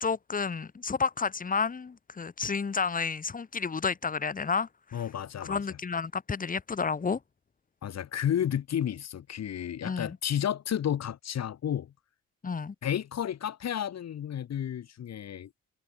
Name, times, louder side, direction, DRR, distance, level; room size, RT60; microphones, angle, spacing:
voice 1, 0.0-5.0 5.4-7.2 9.8-10.2 12.4-12.7, left 5 dB, 25° left, 1.3 m, -31 dB
voice 2, 4.9-5.6 7.8-11.9 12.8-15.5, left 10 dB, 60° left, 2.4 m, -32 dB
cardioid pair, 90°, 30 cm